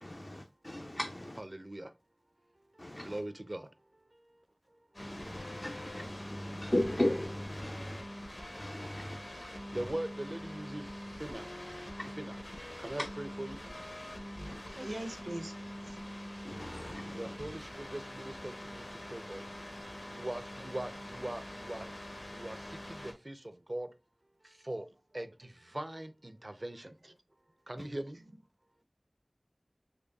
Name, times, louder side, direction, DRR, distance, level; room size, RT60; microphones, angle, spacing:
voice 1, 0.0-1.4 2.8-3.2 5.0-8.0 8.6-9.2 9.7-9.9 12.0-12.1 14.5-14.6 16.4-17.4, left 1 dB, 40° left, 0.4 m, -37 dB
voice 2, 1.5-1.9 2.7-3.7 9.6-11.5 12.2-12.4 12.8-13.7 17.2-19.5 20.1-21.9 22.3-23.9 24.4-24.9 25.1-27.1 27.7-28.2, right 1 dB, 45° right, 0.4 m, -41 dB
sound 1, 4.9-23.1, left 1 dB, 65° left, 1.0 m, -44 dB
voice 3, 14.7-15.5 15.9-16.0, right 1 dB, 85° right, 0.7 m, -40 dB
3.8 x 3.1 x 2.3 m
wide cardioid pair, 40°, 0 cm